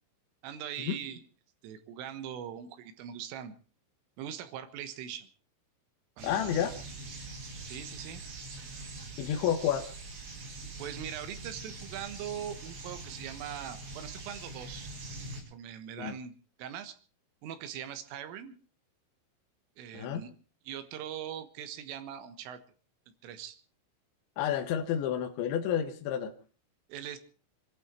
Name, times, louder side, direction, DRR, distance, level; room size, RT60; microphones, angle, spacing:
voice 1, 0.4-1.2 1.6-3.6 4.2-5.3 6.2-6.5 7.6-8.2 10.5-14.9 15.5-16.3 16.6-17.0 17.4-18.5 19.8-20.3 20.7-22.6 23.2-23.6 26.9-27.2, right 9 dB, 85° right, 3.9 m, -41 dB
voice 2, 6.2-6.8 9.2-9.9 16.0-16.2 19.9-20.2 24.4-26.3, left 9 dB, 75° left, 3.4 m, -30 dB
sound 1, 6.2-15.4, right 3 dB, 60° right, 6.8 m, -43 dB
26.0 x 12.0 x 4.5 m
omnidirectional pair, 5.8 m